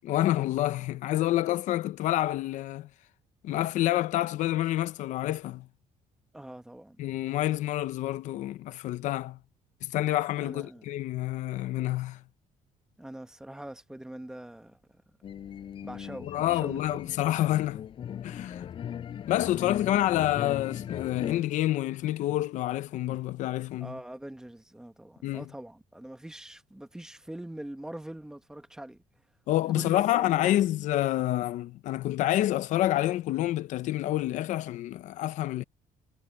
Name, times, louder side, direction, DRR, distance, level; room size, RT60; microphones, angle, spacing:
voice 1, 0.0-2.9 3.4-5.7 7.0-9.4 9.8-12.2 16.2-17.9 18.2-18.7 19.3-23.9 25.2-25.4 29.5-35.6, left 14 dB, 65° left, 0.7 m, -28 dB
voice 2, 6.3-7.0 10.4-10.8 13.0-14.8 15.8-17.0 23.8-29.0 29.7-30.6, right 1 dB, 5° right, 1.1 m, -43 dB
sound 1, 15.2-21.4, left 9 dB, 40° left, 6.1 m, -38 dB
cardioid pair, 180°, 14 cm